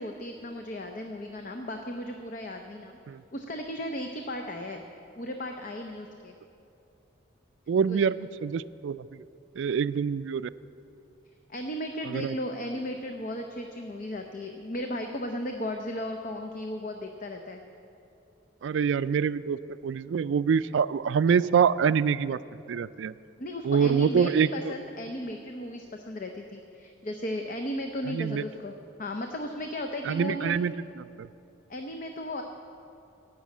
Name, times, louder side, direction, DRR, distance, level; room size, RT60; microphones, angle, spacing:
voice 1, 0.0-3.0 3.3-4.8 5.2-6.3 7.9-8.0 11.5-17.6 23.4-28.7 29.0-30.6 31.7-32.4, left 1 dB, 45° left, 4 dB, 0.6 m, -35 dB
voice 2, 7.7-9.2 9.6-10.5 12.0-12.3 18.6-22.4 22.7-23.1 23.6-24.7 28.1-28.4 30.0-31.3, right 6 dB, 70° right, 16 dB, 0.3 m, -26 dB
15.5 x 6.3 x 8.7 m, 2.8 s
head